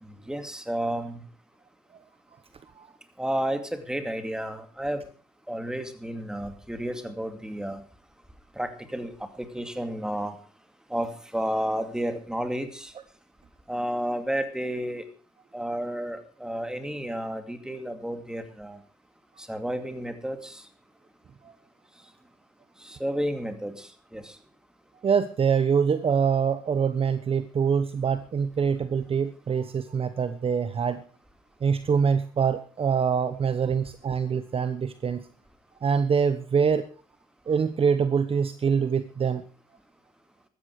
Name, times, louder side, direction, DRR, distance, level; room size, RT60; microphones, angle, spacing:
voice 1, 0.0-1.2 3.2-5.0 5.5-7.8 8.6-10.4 10.9-12.9 13.7-15.0 15.5-18.8 19.4-20.6 22.8-24.4, equal, 5° right, 7 dB, 2.5 m, -31 dB
voice 2, 25.0-31.0 31.6-35.2 35.8-36.9 37.5-39.4, right 6 dB, 35° right, 12 dB, 1.0 m, -24 dB
15.5 x 13.0 x 4.8 m, 0.39 s
cardioid pair, 110°, 17 cm